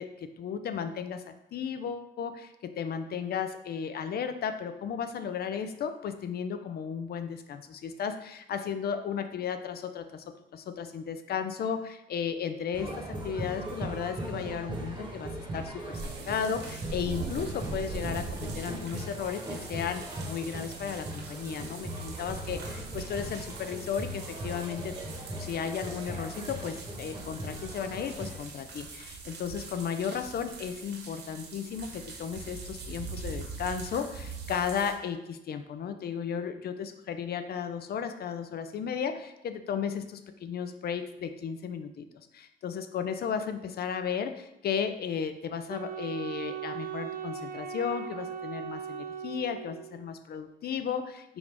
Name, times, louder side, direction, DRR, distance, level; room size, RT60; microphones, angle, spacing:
voice 1, 0.0-25.0 25.4-42.1 42.3-51.4, left 7 dB, 50° left, 9 dB, 0.5 m, -34 dB
sound 1, 12.7-28.4, right 1 dB, 20° right, 1.0 m, -39 dB
sound 2, 15.9-34.9, right 4 dB, 60° right, 1.1 m, -42 dB
Wind instrument woodwind instrument, 45.7-50.1, right 7 dB, 45° right, 0.4 m, -38 dB
4.9 x 2.5 x 3.4 m, 0.89 s
cardioid pair, 90°, 20 cm